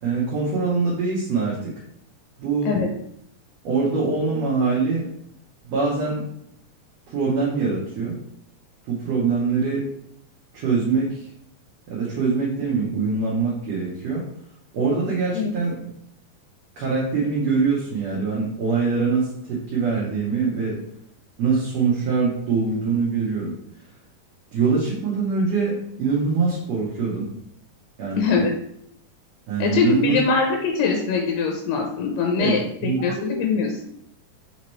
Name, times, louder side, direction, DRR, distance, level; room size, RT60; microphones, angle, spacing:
voice 1, 0.0-1.7 2.4-2.7 3.6-5.1 5.7-6.2 7.1-8.2 8.9-9.9 10.5-11.3 11.9-14.2 14.7-15.8 16.8-20.8 21.4-23.5 24.5-27.3 28.0-28.3 29.5-30.2 32.3-32.6 32.8-33.4, right 4 dB, 70° right, -5 dB, 1.7 m, -23 dB
voice 2, 28.2-28.5 29.6-33.8, left 5 dB, 90° left, 1 dB, 2.3 m, -22 dB
5.2 x 2.9 x 3.0 m, 0.73 s
omnidirectional pair, 3.8 m